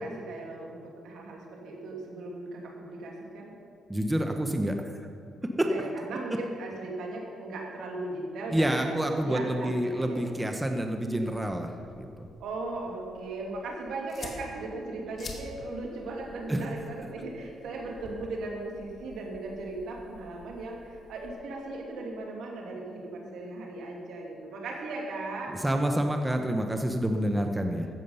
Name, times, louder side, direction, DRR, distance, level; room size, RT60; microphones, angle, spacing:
voice 1, 0.0-3.5 5.6-8.9 9.2-10.2 12.4-25.6, right 2 dB, 75° right, -1 dB, 2.5 m, -37 dB
voice 2, 3.9-5.1 5.6-5.7 8.5-12.3 16.5-16.7 25.5-27.9, right 1 dB, 10° right, 4 dB, 0.9 m, -28 dB
sound 1, 11.7-21.3, left 3 dB, 40° left, 1.8 m, -49 dB
15.0 x 7.2 x 5.5 m, 2.4 s
cardioid pair, 90°, 0 cm